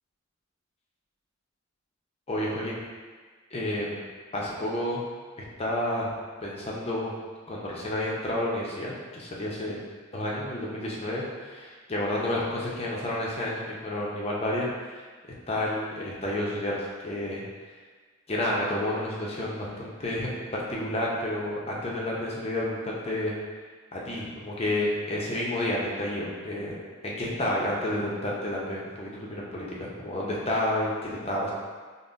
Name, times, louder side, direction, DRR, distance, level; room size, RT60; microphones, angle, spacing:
voice 1, 2.3-2.8 3.5-4.0 4.3-5.0 5.4-6.1 6.4-7.1 7.5-9.8 10.1-15.0 15.5-17.4 18.3-20.3 20.7-23.3 23.9-26.8 27.0-31.5, left 1 dB, 30° left, -4 dB, 0.6 m, -30 dB
5.4 x 2.1 x 2.5 m, 1.5 s
head